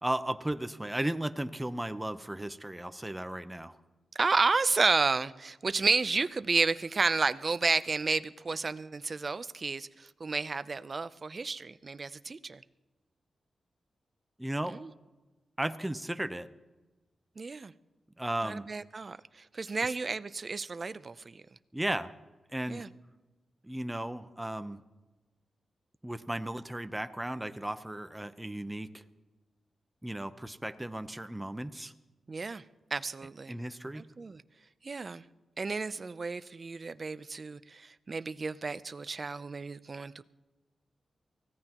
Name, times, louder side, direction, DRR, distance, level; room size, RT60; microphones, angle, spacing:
voice 1, 0.0-3.8 14.4-14.8 15.6-16.5 18.2-18.7 19.8-20.0 21.7-22.1 22.5-22.8 23.6-24.8 26.0-29.0 30.0-31.9 33.5-34.0, right 1 dB, 10° right, 10 dB, 0.8 m, -35 dB
voice 2, 4.2-12.6 14.7-14.9 17.4-17.7 18.4-21.4 22.7-22.9 32.3-32.6 32.9-33.5 33.9-34.4 34.8-35.2 35.6-40.2, right 4 dB, 45° right, 14 dB, 0.6 m, -31 dB
24.0 x 16.5 x 3.0 m, 1.1 s
cardioid pair, 60°, 0 cm